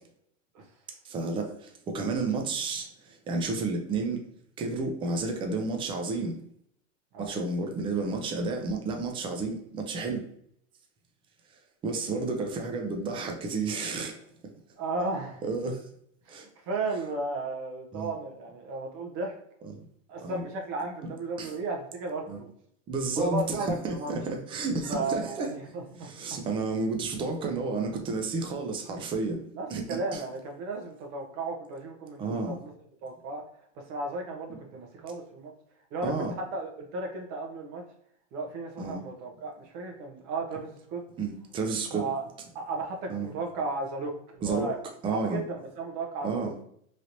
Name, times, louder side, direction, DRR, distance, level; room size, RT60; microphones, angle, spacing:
voice 1, 1.0-2.9 3.3-4.2 4.6-6.4 7.2-10.2 11.8-14.2 15.4-15.8 16.3-16.5 17.9-18.1 20.2-20.4 21.4-21.5 22.3-22.4 22.9-25.5 26.0-29.4 29.7-30.2 32.2-32.6 36.0-36.3 38.8-39.0 41.2-42.0 43.1-43.3 44.4-44.7 45.0-45.4 46.2-46.5, right 3 dB, 15° right, 0.3 m, -31 dB
voice 2, 7.1-7.4 14.8-15.4 16.3-19.4 20.1-22.5 23.2-24.1 24.9-26.4 29.5-32.7 33.0-33.5 33.7-35.5 35.9-37.8 38.3-41.0 41.9-42.2 42.5-44.8 45.1-46.5, right 3 dB, 45° right, 0.9 m, -34 dB
3.2 x 2.8 x 2.6 m
supercardioid pair, 125°, 37 cm